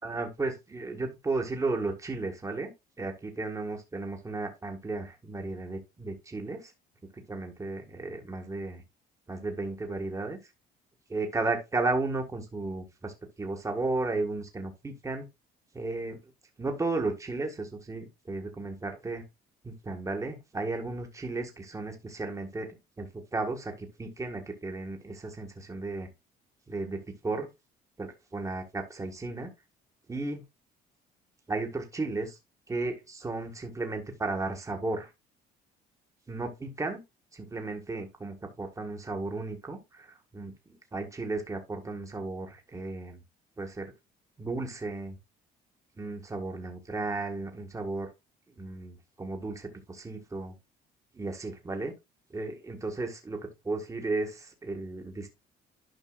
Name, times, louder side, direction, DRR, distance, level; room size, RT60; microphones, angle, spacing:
voice 1, 0.0-2.7 3.0-6.7 7.1-8.8 9.3-10.4 11.1-15.3 15.7-16.2 16.6-19.2 19.6-26.1 26.7-27.5 28.0-29.5 30.1-30.4 31.5-32.4 32.7-35.1 36.3-37.0 37.3-43.2 43.6-43.9 44.4-45.2 46.0-48.1 48.6-50.6 51.1-51.9 52.3-53.4 53.6-55.3, right 3 dB, 20° right, 1.7 m, -34 dB
11.0 x 5.4 x 2.4 m
cardioid pair, 110°, 17 cm